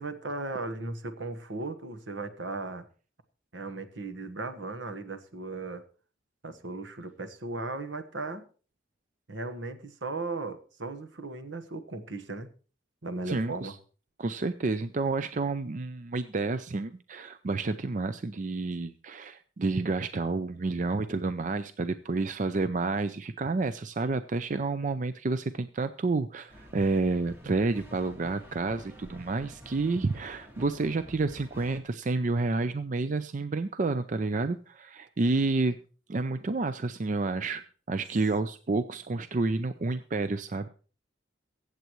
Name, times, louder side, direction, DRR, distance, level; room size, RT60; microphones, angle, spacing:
voice 1, 0.0-2.9 3.5-5.8 6.4-8.4 9.3-12.5 13.0-13.7, right 3 dB, 75° right, 9 dB, 1.3 m, -36 dB
voice 2, 13.3-13.7 14.2-35.8 36.1-37.6 37.9-40.7, right 3 dB, 40° right, 11 dB, 0.4 m, -29 dB
sound 1, 26.5-31.8, equal, 10° right, 1.8 m, -49 dB
23.0 x 8.1 x 3.1 m, 0.39 s
head